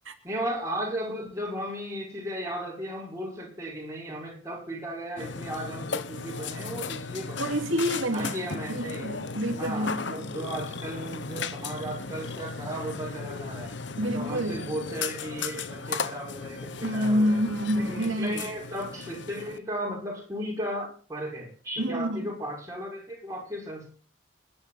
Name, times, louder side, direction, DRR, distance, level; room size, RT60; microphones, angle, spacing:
voice 1, 0.2-7.6 8.1-9.1 9.6-17.4 17.8-23.9, right 1 dB, 15° right, 5.7 m, -35 dB
Burping eructation, 5.2-19.6, left 4 dB, 65° left, 1.1 m, -36 dB
voice 2, 7.4-10.3 14.0-14.7 16.8-18.4 21.8-22.3, equal, 90° right, 2.6 m, -28 dB
27.5 x 10.5 x 4.1 m
head